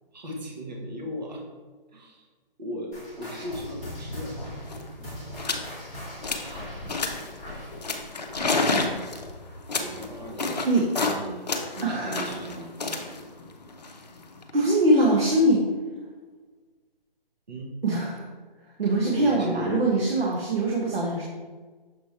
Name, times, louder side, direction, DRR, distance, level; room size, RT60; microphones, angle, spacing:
voice 1, 0.1-1.5 1.9-2.3 2.6-4.5 5.4-5.6 6.4-6.7 9.8-10.5 11.0-11.5 11.7-12.7 17.5-17.7 19.0-19.9, equal, 45° right, 0 dB, 1.2 m, -37 dB
sound 1, 2.9-9.8 10.0-10.4 11.0-11.1 11.8-11.9, left 1 dB, 10° right, 0.9 m, -40 dB
sound 2, 4.3-4.4 4.6-4.9 5.4-5.7 6.0-6.6 6.9-7.3 7.8-11.2 11.5-14.5, left 3 dB, 45° left, 0.7 m, -29 dB
voice 2, 11.8-12.3 14.5-15.6 17.8-18.3 18.8-21.2, right 1 dB, 85° right, -3 dB, 1.4 m, -22 dB
6.6 x 3.3 x 4.3 m, 1.4 s
hypercardioid pair, 175°, 29 cm